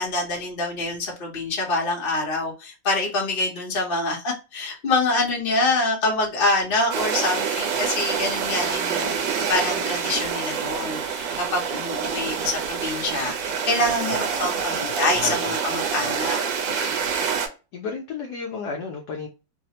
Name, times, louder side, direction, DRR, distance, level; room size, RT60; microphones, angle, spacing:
voice 1, 0.0-16.4 16.7-16.8, left 2 dB, 40° left, -1 dB, 0.8 m, -26 dB
sound 1, 6.9-17.5, right 6 dB, 75° right, 1.3 m, -26 dB
voice 2, 14.8-15.6 16.0-16.1 17.7-19.3, left 5 dB, 70° left, 2 dB, 1.0 m, -33 dB
3.2 x 2.0 x 2.7 m, 0.30 s
omnidirectional pair, 2.1 m